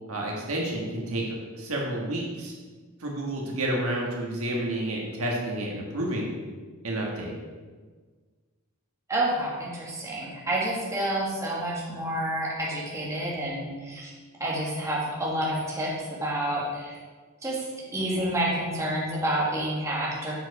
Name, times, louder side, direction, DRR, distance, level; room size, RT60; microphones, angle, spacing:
voice 1, 0.1-2.5 3.0-6.3 6.8-7.3, right 1 dB, 70° right, -2 dB, 1.5 m, -30 dB
voice 2, 9.1-14.1 14.4-17.0 17.4-20.3, right 1 dB, 15° right, -5 dB, 1.5 m, -29 dB
7.4 x 4.9 x 4.7 m, 1.4 s
head